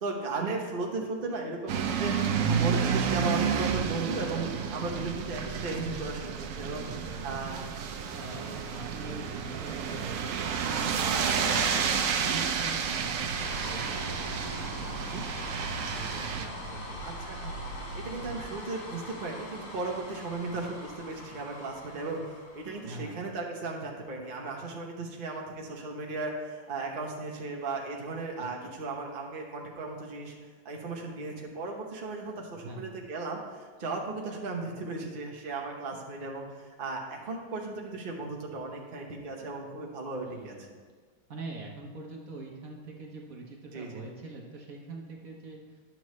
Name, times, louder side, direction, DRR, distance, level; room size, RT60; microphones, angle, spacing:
voice 1, 0.0-2.1 2.5-4.5 4.7-6.8 7.2-7.6 11.1-11.5 15.1-15.2 17.0-17.5 18.0-22.2 22.5-30.3 30.6-40.7 43.7-44.0, right 3 dB, 40° right, -1 dB, 0.9 m, -36 dB
sound 1, 1.7-16.5, right 7 dB, 80° right, 0.7 m, -30 dB
voice 2, 6.6-7.8 8.1-17.0 22.8-23.2 28.4-28.7 32.5-32.9 40.2-40.8 41.3-45.8, right 3 dB, 55° right, 0 dB, 1.2 m, -44 dB
sound 2, 12.9-23.3, equal, 40° left, 1.4 m, -41 dB
10.5 x 7.0 x 3.1 m, 1.5 s
omnidirectional pair, 2.1 m